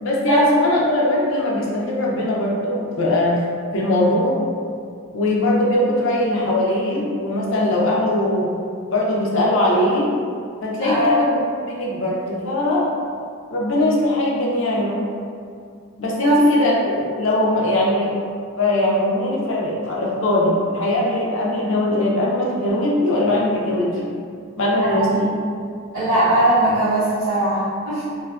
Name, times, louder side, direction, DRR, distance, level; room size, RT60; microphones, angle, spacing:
voice 1, 0.0-3.4 3.7-4.4 5.1-8.5 8.9-10.1 10.6-12.9 13.5-15.0 16.0-18.2 18.6-24.1 24.6-25.3, left 1 dB, 60° left, -4 dB, 0.5 m, -20 dB
voice 2, 10.8-11.1 16.0-16.4 24.9-25.1 25.9-28.0, right 1 dB, 80° right, -15 dB, 0.7 m, -20 dB
2.6 x 2.3 x 2.3 m, 2.3 s
head